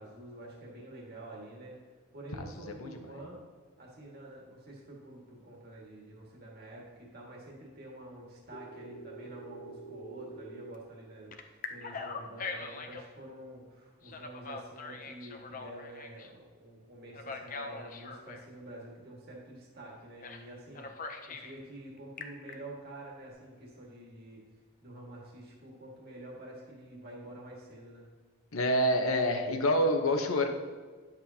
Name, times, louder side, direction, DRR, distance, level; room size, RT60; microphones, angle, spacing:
voice 1, 0.0-1.8 2.1-3.4 3.8-20.9 21.3-24.4 24.8-28.1, right 1 dB, 45° right, -2 dB, 1.8 m, -48 dB
Telephone, 8.5-10.8 11.3-13.1 14.0-16.3 17.1-18.5 20.2-20.5 20.7-21.5 22.0-22.5, left 3 dB, 35° left, 0.6 m, -43 dB
voice 2, 28.5-30.5, equal, 70° left, 5 dB, 1.0 m, -26 dB
10.5 x 7.2 x 2.9 m, 1.5 s
head